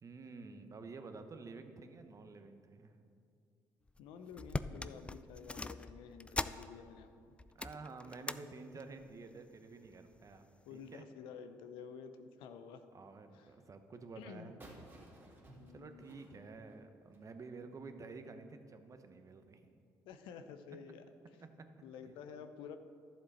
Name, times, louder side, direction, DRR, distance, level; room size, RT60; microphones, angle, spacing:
voice 1, 0.0-2.9 7.5-11.0 12.9-14.6 15.7-19.7 21.6-21.7 22.1-22.2, right 4 dB, 40° right, 7 dB, 1.0 m, -50 dB
sound 1, 3.9-4.0 4.3-7.1 7.4-8.4 8.8-9.1 9.9-10.4 10.9-11.0, left 2 dB, 15° left, 0.4 m, -42 dB
voice 2, 4.0-7.4 10.7-12.8 13.3-13.5 14.2-14.5 15.6-16.5 20.1-21.0 21.8-22.8, left 6 dB, 80° left, 9 dB, 0.6 m, -51 dB
sound 2, 14.6-17.3, right 1 dB, 25° right, 2.5 m, -57 dB
11.5 x 7.6 x 4.2 m, 2.4 s
supercardioid pair, 60°, 8 cm